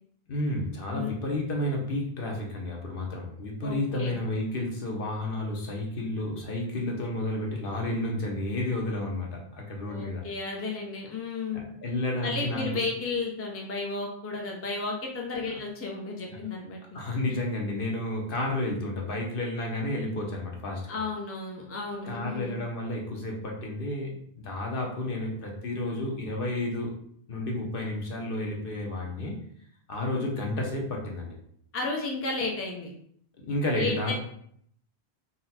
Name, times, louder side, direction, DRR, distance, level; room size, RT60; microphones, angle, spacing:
voice 1, 0.3-10.2 11.5-12.8 16.9-21.0 22.1-26.9 27.3-29.3 29.9-31.3 33.4-34.1, left 1 dB, 60° left, 0 dB, 1.0 m, -31 dB
voice 2, 3.6-4.2 9.9-11.7 12.2-17.0 20.9-22.6 31.7-32.9 33.7-34.1, left 3 dB, 20° left, -1 dB, 0.5 m, -33 dB
4.0 x 2.2 x 4.1 m, 0.65 s
omnidirectional pair, 1.1 m